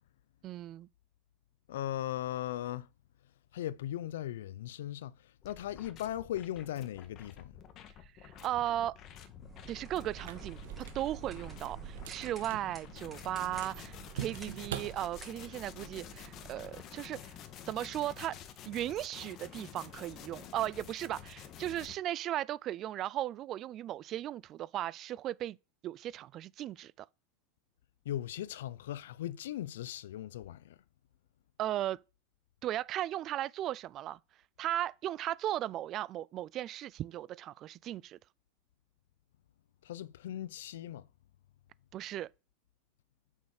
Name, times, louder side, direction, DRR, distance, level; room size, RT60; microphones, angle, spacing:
voice 1, 0.4-0.9 8.2-9.0 9.7-10.6 10.9-17.3 17.7-18.4 18.6-25.6 25.8-27.1 31.6-32.0 32.6-34.2 34.6-38.2 41.9-42.3, right 13 dB, 35° right, 0.4 m, -36 dB
voice 2, 1.7-2.9 3.5-5.2 5.4-7.5 28.0-30.8 39.8-41.0, left 12 dB, 85° left, 0.6 m, -38 dB
sound 1, 5.4-21.9, left 9 dB, 35° left, 1.6 m, -50 dB
sound 2, 9.4-16.7, right 7 dB, 15° right, 3.6 m, -49 dB
sound 3, 10.1-15.6, right 11 dB, 85° right, 1.8 m, -46 dB
8.7 x 6.4 x 6.5 m
supercardioid pair, 145°, 0 cm